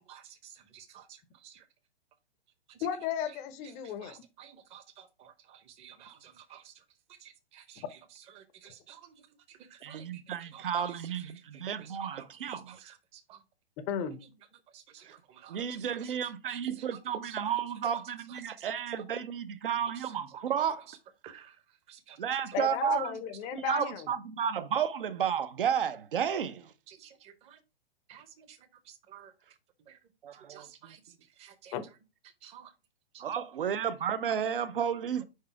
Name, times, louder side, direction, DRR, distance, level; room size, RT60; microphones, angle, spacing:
voice 1, 0.1-1.6 2.7-2.9 3.3-3.4 3.6-6.8 7.1-13.4 14.1-14.3 14.7-16.2 16.4-17.5 18.3-18.7 19.8-20.2 20.9-21.0 21.2-22.2 26.9-27.6 28.1-29.3 29.9-30.0 30.3-31.7 32.2-32.7 33.1-33.2 34.3-34.4, right 9 dB, 20° right, 0.8 m, -54 dB
voice 2, 2.8-4.2 13.8-14.2 22.5-24.1 31.7-31.8, left 9 dB, 25° left, 0.7 m, -34 dB
voice 3, 9.8-12.8 15.1-15.2 15.5-20.9 22.2-23.1 23.5-26.7 30.2-31.0 33.2-35.2, right 8 dB, 60° right, 0.8 m, -32 dB
4.9 x 4.6 x 4.5 m
figure-of-eight pair, 115°, 30 cm